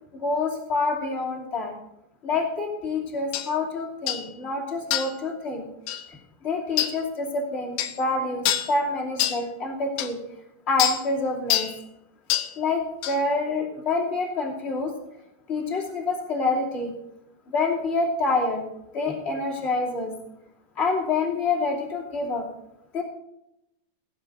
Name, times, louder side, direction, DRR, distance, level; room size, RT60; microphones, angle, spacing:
voice 1, 0.2-1.7 2.2-5.7 6.4-10.2 10.7-11.7 12.6-14.9 15.5-16.9 17.5-18.6 18.9-20.1 20.8-22.4 22.9-23.0, left 3 dB, 20° left, -3 dB, 2.1 m, -27 dB
sound 1, 3.3-3.5 4.1-4.3 4.9-5.2 5.9-6.0 6.8-7.0 7.8-8.0 8.4-8.7 9.2-9.4 10.0-10.1 10.8-11.0 11.5-11.7 12.3-12.5 13.0-13.2, left 11 dB, 75° left, 2.7 m, -25 dB
16.0 x 11.5 x 4.0 m, 0.82 s
omnidirectional pair, 5.1 m